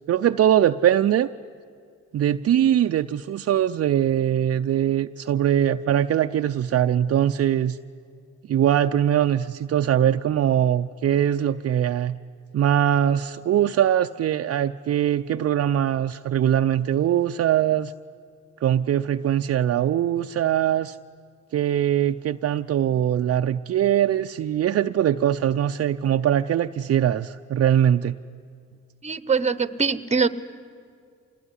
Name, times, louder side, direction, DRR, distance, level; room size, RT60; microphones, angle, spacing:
voice 1, 0.1-1.3 2.1-7.8 8.5-12.2 12.5-17.9 18.6-21.0 21.5-28.2, right 10 dB, 50° right, 7 dB, 0.6 m, -22 dB
voice 2, 29.0-30.3, right 5 dB, 20° right, 15 dB, 1.0 m, -23 dB
26.0 x 20.0 x 9.8 m, 2.3 s
cardioid pair, 90°, 30 cm